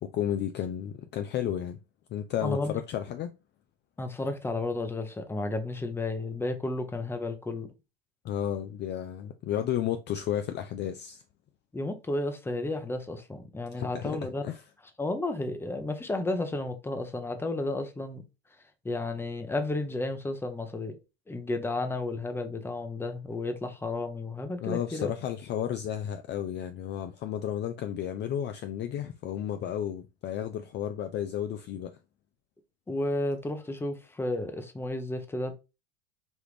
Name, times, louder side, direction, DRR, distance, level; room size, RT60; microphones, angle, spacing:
voice 1, 0.0-1.8 2.1-3.3 8.2-11.2 13.8-14.6 24.6-32.0, left 10 dB, 35° left, 0.4 m, -32 dB
voice 2, 2.4-2.8 4.0-7.7 11.7-14.4 15.0-18.2 18.8-21.0 21.3-25.1 32.9-35.6, left 2 dB, 5° left, 0.7 m, -32 dB
5.1 x 2.4 x 3.2 m
hypercardioid pair, 95°, 31 cm